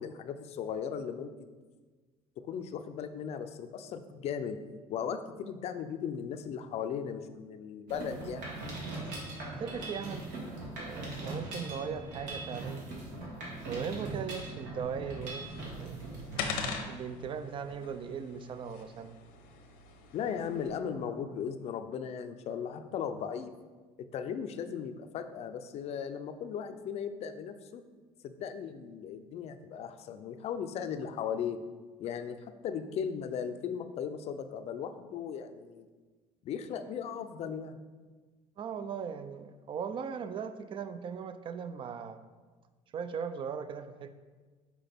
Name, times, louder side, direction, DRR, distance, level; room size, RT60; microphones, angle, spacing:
voice 1, 0.0-1.5 2.4-4.6 4.9-8.5 20.1-23.5 24.1-27.8 28.2-31.6 32.0-35.9 36.4-37.8, left 7 dB, 50° left, 9 dB, 0.5 m, -37 dB
Mechanisms, 7.9-16.7, right 2 dB, 80° right, 1.7 m, -40 dB
voice 2, 9.6-10.3 10.7-12.9 13.7-15.5 15.8-16.0 16.3-16.5 16.9-19.2 38.6-42.2 42.9-44.1, right 6 dB, 40° right, 11 dB, 0.4 m, -38 dB
sound 1, 15.2-20.7, left 6 dB, 85° left, 0.8 m, -42 dB
5.7 x 4.8 x 3.5 m, 1.4 s
cardioid pair, 115°, 14 cm